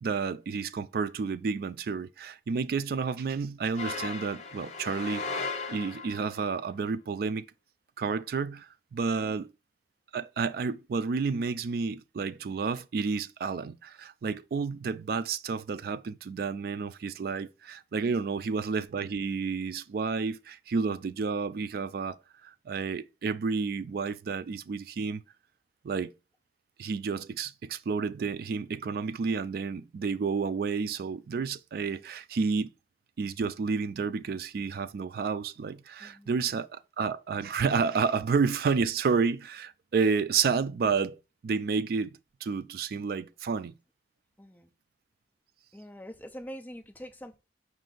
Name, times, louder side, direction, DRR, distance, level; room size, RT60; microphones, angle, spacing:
voice 1, 0.0-5.2 5.7-7.5 8.0-9.5 10.1-22.2 22.4-25.2 25.8-26.1 26.8-32.7 33.2-41.2 41.4-43.7, right 5 dB, 55° right, 0.3 m, -30 dB
sound 1, 3.8-6.4, left 4 dB, 40° left, 0.7 m, -36 dB
voice 2, 36.0-36.3 44.4-44.7 45.7-47.4, equal, 10° left, 0.5 m, -45 dB
5.1 x 2.5 x 3.8 m
head